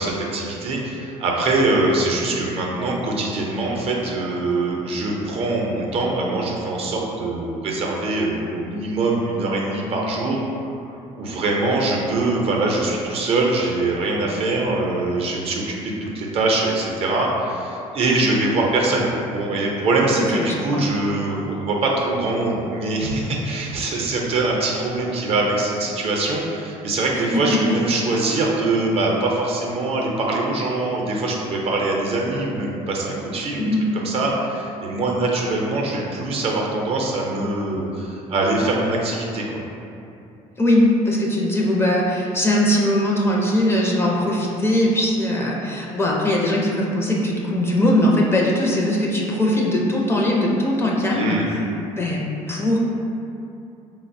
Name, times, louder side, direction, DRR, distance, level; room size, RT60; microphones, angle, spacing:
voice 1, 0.0-10.4 11.2-33.7 33.9-39.6 51.1-51.5, right 2 dB, 50° right, -2 dB, 0.5 m, -23 dB
voice 2, 20.2-20.8 27.3-27.6 33.6-33.9 40.6-51.7 52.0-52.8, left 1 dB, 20° left, -3 dB, 0.4 m, -20 dB
3.8 x 2.0 x 2.5 m, 2.7 s
cardioid pair, 110°, 13 cm